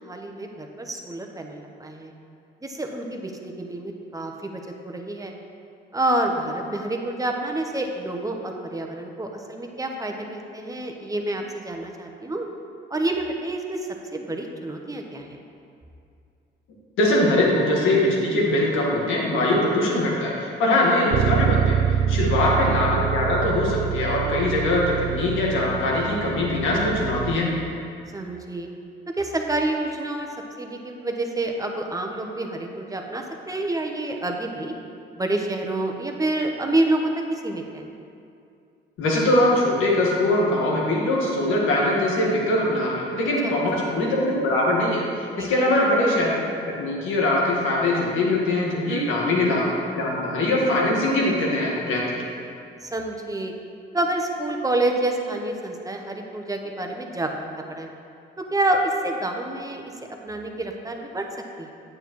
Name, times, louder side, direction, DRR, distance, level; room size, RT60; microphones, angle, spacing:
voice 1, 0.0-2.1 2.6-5.3 5.9-12.5 12.9-13.8 14.1-15.4 22.2-22.3 28.1-28.7 29.2-30.3 30.6-34.7 35.2-37.8 43.4-43.5 45.4-45.5 48.9-49.0 52.8-53.5 53.9-57.9 58.5-59.8 60.2-61.3 61.6-61.7, right 2 dB, 15° right, 2 dB, 0.9 m, -28 dB
voice 2, 17.0-21.8 22.1-27.5 39.0-46.3 46.8-49.6 49.9-52.3, left 1 dB, 85° left, -3 dB, 1.7 m, -22 dB
Bass guitar, 21.1-27.4, right 9 dB, 75° right, 0.4 m, -26 dB
8.9 x 8.6 x 3.1 m, 2.5 s
cardioid pair, 90°, 20 cm